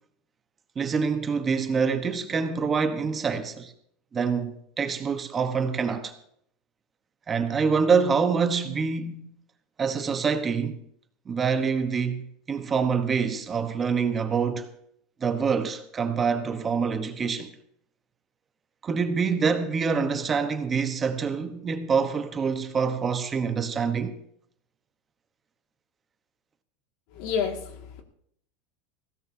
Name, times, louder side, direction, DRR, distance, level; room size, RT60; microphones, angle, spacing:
voice 1, 0.8-3.7 4.1-6.1 7.3-9.3 9.8-10.8 11.3-14.7 15.2-17.5 18.8-24.2, right 5 dB, 20° right, 1.0 m, -26 dB
voice 2, 27.1-28.0, left 7 dB, 60° left, 2.0 m, -30 dB
19.5 x 16.5 x 2.8 m
supercardioid pair, 145°, 0 cm